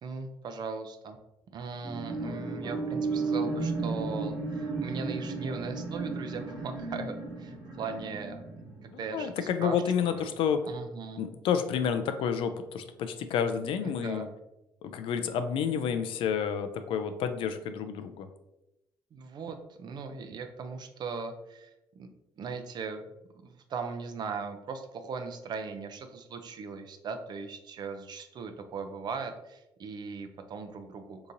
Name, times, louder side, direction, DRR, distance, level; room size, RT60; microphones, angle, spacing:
voice 1, 0.0-1.2 1.5-10.3 10.6-11.2 13.8-14.3 19.1-21.7 22.0-22.1 22.4-23.0 23.4-31.2, right 5 dB, 55° right, 7 dB, 0.5 m, -39 dB
Piano, 1.8-11.8 12.1-12.2, right 1 dB, 5° left, 0.9 m, -48 dB
sound 1, 1.9-9.6 10.1-10.2, right 3 dB, 75° right, 1.1 m, -34 dB
voice 2, 8.9-10.6 11.2-14.3 14.8-18.3, left 7 dB, 75° left, 8 dB, 0.4 m, -30 dB
3.7 x 2.9 x 2.6 m, 0.91 s
cardioid pair, 100°, 9 cm